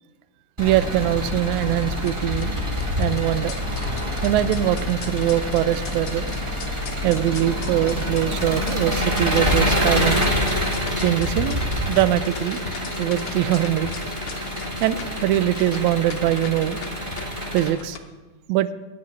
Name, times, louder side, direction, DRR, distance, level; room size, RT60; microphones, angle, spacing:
Engine, 0.6-17.7, left 1 dB, 25° right, 0.6 m, -26 dB
voice 1, 0.6-2.6 3.0-3.6 4.2-6.3 7.0-10.3 11.0-11.6 11.9-12.7 13.0-13.9 14.8-16.8 17.5-18.0 18.5-18.7, right 13 dB, 80° right, 15 dB, 1.9 m, -22 dB
sound 1, 2.0-18.0, left 6 dB, 75° left, 1.0 m, -41 dB
sound 2, 5.2-8.7 9.1-17.3, left 3 dB, 30° left, 2.4 m, -42 dB
9.6 x 6.9 x 8.6 m, 1.2 s
omnidirectional pair, 3.4 m